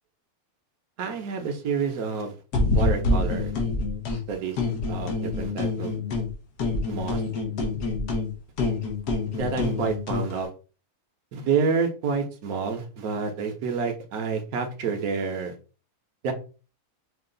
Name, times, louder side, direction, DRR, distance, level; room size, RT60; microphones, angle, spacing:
voice 1, 1.0-2.3 2.7-3.5 4.3-4.6 4.9-6.0 6.9-7.2 9.3-10.5 11.3-15.5 16.2-16.3, right 5 dB, 70° right, 3 dB, 1.4 m, -28 dB
sound 1, 2.5-4.2 4.6-6.3 6.6-10.3, left 3 dB, 90° left, 1.7 m, -26 dB
5.4 x 2.5 x 3.8 m, 0.35 s
omnidirectional pair, 1.6 m